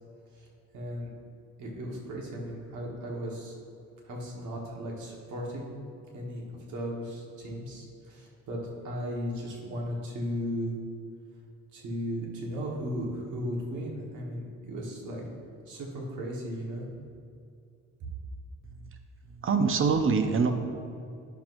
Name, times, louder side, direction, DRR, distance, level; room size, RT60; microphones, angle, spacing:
voice 1, 0.7-1.1 1.6-3.6 4.1-5.8 6.1-8.6 8.8-10.7 11.7-15.3 15.7-16.9, equal, 80° right, -2 dB, 1.5 m, -36 dB
voice 2, 18.6-19.0 19.2-20.5, right 5 dB, 45° right, 7 dB, 0.7 m, -25 dB
10.0 x 6.1 x 2.6 m, 2.3 s
cardioid pair, 90°, 30 cm